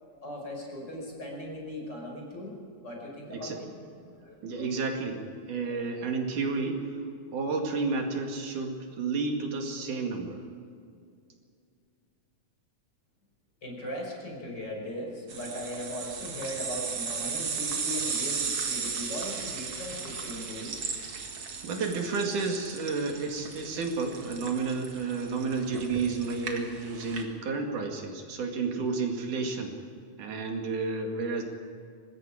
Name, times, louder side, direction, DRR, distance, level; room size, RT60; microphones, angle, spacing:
voice 1, 0.2-2.6 2.8-3.7 4.0-4.7 5.7-5.8 13.6-20.9, left 1 dB, 35° left, -1 dB, 6.0 m, -38 dB
voice 2, 4.4-5.2 5.5-7.0 7.3-10.4 21.6-29.8 30.2-31.4, right 4 dB, 85° right, 2 dB, 3.8 m, -31 dB
sound 1, 15.3-27.2, right 5 dB, 50° right, 2.8 m, -36 dB
25.0 x 20.5 x 5.0 m, 2.4 s
omnidirectional pair, 3.5 m